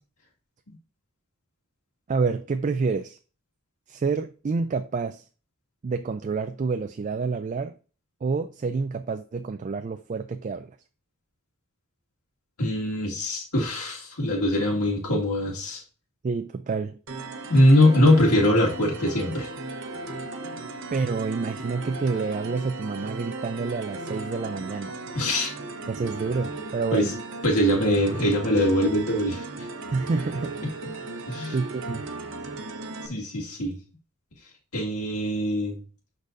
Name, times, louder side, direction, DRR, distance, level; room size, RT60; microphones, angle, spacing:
voice 1, 2.1-3.2 3.9-5.3 5.8-7.7 8.2-10.7 16.2-17.0 20.9-25.0 25.9-27.1 29.9-30.6 31.5-32.0, right 4 dB, 35° right, 0.3 m, -28 dB
voice 2, 12.6-15.8 17.5-19.5 25.2-25.5 26.9-27.1 27.4-29.5 31.3-31.6 33.0-33.8 34.7-35.8, left 1 dB, 90° left, 1.9 m, -22 dB
sound 1, 17.1-33.1, right 2 dB, 55° right, 0.9 m, -36 dB
11.5 x 4.0 x 2.5 m
head